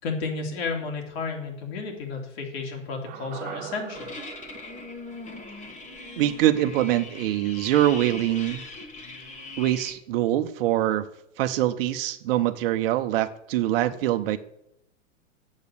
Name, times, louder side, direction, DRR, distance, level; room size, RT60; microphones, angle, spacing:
voice 1, 0.0-4.1, left 4 dB, 55° left, 2 dB, 3.0 m, -32 dB
sound 1, 3.1-7.4 7.6-7.7, right 12 dB, 25° right, 0.5 m, -43 dB
sound 2, 3.9-9.9, left 3 dB, 20° left, 1.5 m, -40 dB
voice 2, 6.2-8.6 9.6-11.1 11.4-14.4, right 13 dB, 50° right, 9 dB, 0.9 m, -24 dB
7.5 x 6.8 x 8.2 m, 0.79 s
hypercardioid pair, 105°, 36 cm